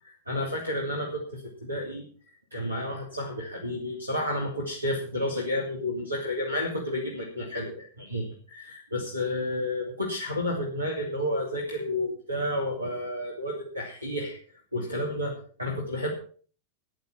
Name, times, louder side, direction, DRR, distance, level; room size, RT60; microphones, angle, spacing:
voice 1, 0.0-2.0 2.5-14.4 14.7-16.1, left 1 dB, 85° right, 0 dB, 2.8 m, -31 dB
14.0 x 9.4 x 5.8 m, 0.42 s
figure-of-eight pair, 90°, 0 cm